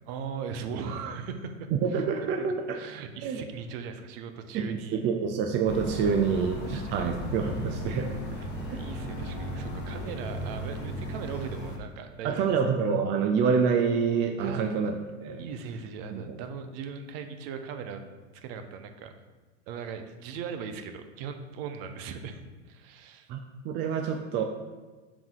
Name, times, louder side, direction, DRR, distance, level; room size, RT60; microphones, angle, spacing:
voice 1, 0.1-1.7 2.7-5.0 6.0-7.0 8.7-12.5 14.4-14.7 15.4-18.0 18.4-19.1 19.7-23.3, right 6 dB, 50° right, 7 dB, 0.8 m, -39 dB
voice 2, 1.8-2.8 3.2-3.4 4.5-8.2 8.7-8.8 12.2-14.9 15.2-15.4 16.1-16.4 23.3-23.4 23.6-24.4, right 6 dB, 30° right, 4 dB, 0.5 m, -27 dB
sound 1, 5.7-11.8, left 1 dB, 25° left, 1.4 m, -36 dB
5.0 x 3.5 x 5.6 m, 1.3 s
hypercardioid pair, 110°, 37 cm